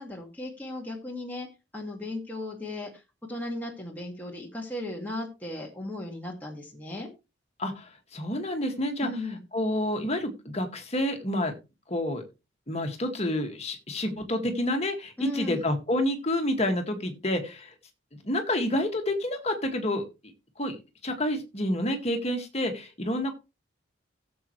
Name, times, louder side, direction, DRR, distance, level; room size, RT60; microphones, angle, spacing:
voice 1, 0.0-1.5 1.7-3.0 3.3-7.1 9.0-9.4 15.2-15.6, left 1 dB, 10° left, -1 dB, 2.0 m, -36 dB
voice 2, 7.6-9.1 9.5-11.5 11.9-12.2 12.7-17.7 18.2-20.0 20.6-20.8 21.0-23.3, left 1 dB, 30° left, 5 dB, 2.0 m, -28 dB
15.0 x 7.7 x 3.2 m, 0.27 s
head